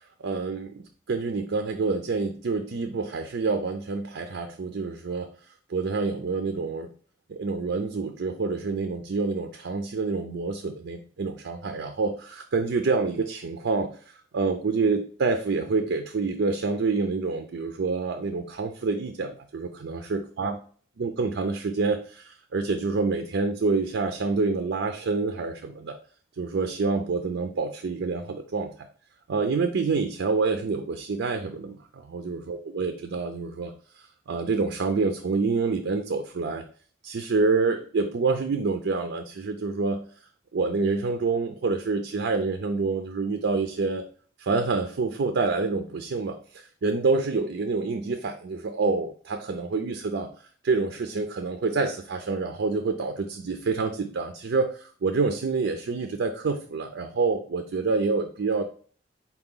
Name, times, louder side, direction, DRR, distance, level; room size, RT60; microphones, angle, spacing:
voice 1, 0.2-5.3 5.7-6.9 7.3-13.9 14.3-20.6 21.0-26.0 26.4-28.7 29.3-33.7 34.3-36.6 37.0-40.0 40.5-44.0 44.4-50.3 50.6-58.6, right 4 dB, 85° right, 6 dB, 0.5 m, -27 dB
4.2 x 2.9 x 3.7 m, 0.43 s
head